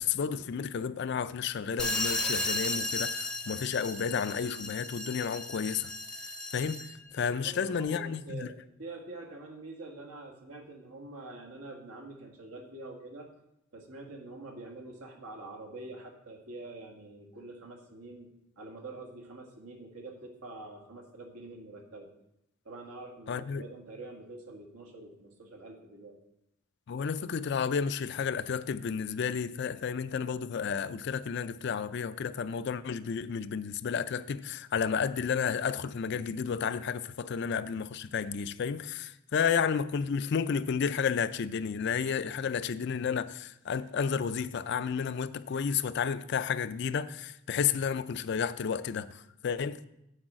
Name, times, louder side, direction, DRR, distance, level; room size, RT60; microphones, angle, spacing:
voice 1, 0.0-5.9 6.5-8.5 23.3-23.6 26.9-49.9, left 6 dB, 50° left, 0.3 m, -31 dB
sound 1, 1.8-7.0, left 2 dB, 5° left, 0.6 m, -34 dB
voice 2, 7.2-8.5 8.8-13.3 13.7-18.3 18.6-22.1 22.7-26.2, right 2 dB, 85° right, 1.6 m, -46 dB
8.6 x 4.8 x 7.4 m
head